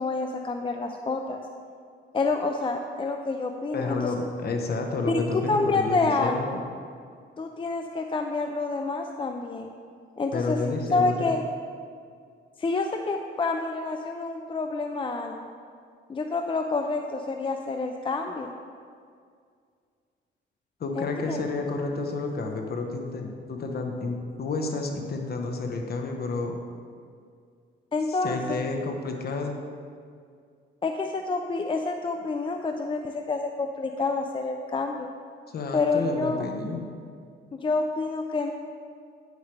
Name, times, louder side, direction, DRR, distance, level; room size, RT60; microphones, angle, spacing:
voice 1, 0.0-1.4 2.1-4.1 5.1-6.6 7.4-9.7 10.2-10.6 10.9-11.4 12.6-15.5 16.1-18.5 21.0-21.4 27.9-28.6 30.8-35.1 35.7-36.5 37.5-38.5, left 3 dB, 25° left, 4 dB, 0.5 m, -28 dB
voice 2, 3.7-6.6 10.3-11.3 20.8-26.6 28.1-29.6 35.5-37.0, left 3 dB, 50° left, 3 dB, 1.2 m, -30 dB
9.5 x 9.3 x 3.4 m, 2.2 s
cardioid pair, 90°, 20 cm